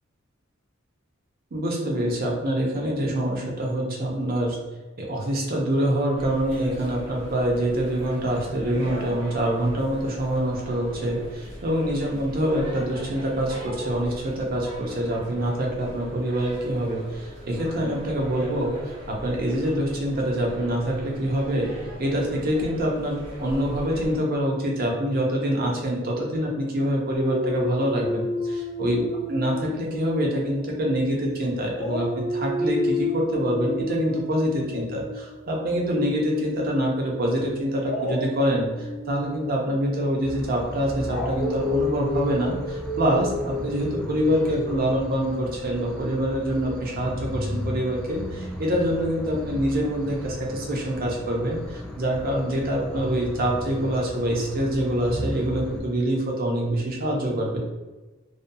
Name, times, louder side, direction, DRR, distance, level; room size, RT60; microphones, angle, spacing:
voice 1, 1.5-4.6 5.0-21.7 22.0-57.6, equal, 50° right, -1 dB, 0.6 m, -25 dB
sound 1, 6.2-24.2, equal, 65° right, 1.0 m, -40 dB
Dog, 27.1-31.3 31.7-36.7 37.8-44.8, left 2 dB, 70° left, 0.5 m, -31 dB
sound 2, 40.2-55.8, equal, 5° left, 0.3 m, -36 dB
2.5 x 2.2 x 2.6 m, 1.2 s
head